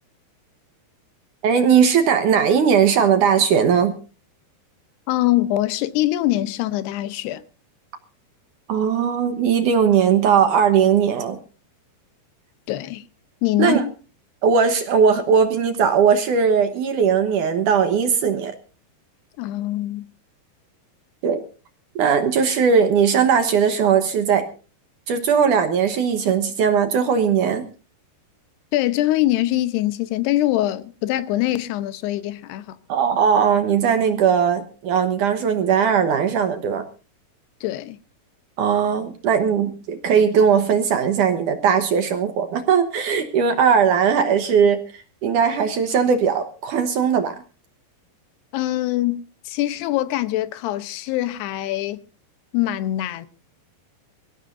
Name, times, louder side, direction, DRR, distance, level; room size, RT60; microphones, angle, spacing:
voice 1, 1.4-4.0 8.7-11.4 13.6-13.8 14.4-18.5 21.2-21.4 22.0-24.5 25.1-27.7 32.9-36.8 38.6-47.4, right 7 dB, 65° right, 2.2 m, -19 dB
voice 2, 5.1-7.4 12.7-13.0 13.4-13.9 19.4-20.1 28.7-32.8 37.6-38.0 48.5-52.0 52.5-53.3, left 15 dB, 80° left, 3.0 m, -23 dB
24.5 x 15.5 x 2.6 m
omnidirectional pair, 4.7 m